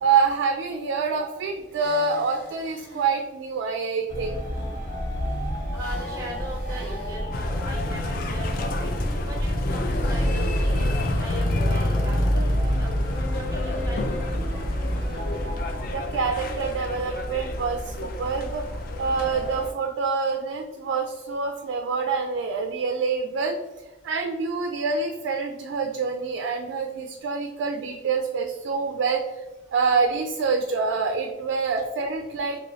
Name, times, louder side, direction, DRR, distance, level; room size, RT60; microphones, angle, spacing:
voice 1, 0.0-4.4 15.9-23.6 24.0-29.2 29.7-32.6, right 4 dB, 85° right, 3 dB, 0.3 m, -26 dB
sound 1, 1.7-3.2 5.7-7.2 9.8-10.8, equal, 10° left, 0.9 m, -43 dB
sound 2, 4.1-15.9, equal, 90° left, 1.5 m, -28 dB
voice 2, 5.7-8.9 9.3-12.5 12.8-12.9 13.3-14.8 31.5-31.6, right 1 dB, 20° right, -1 dB, 0.6 m, -40 dB
sound 3, 7.3-19.7, left 2 dB, 50° left, 0.3 m, -30 dB
3.0 x 3.0 x 2.6 m, 1.1 s
head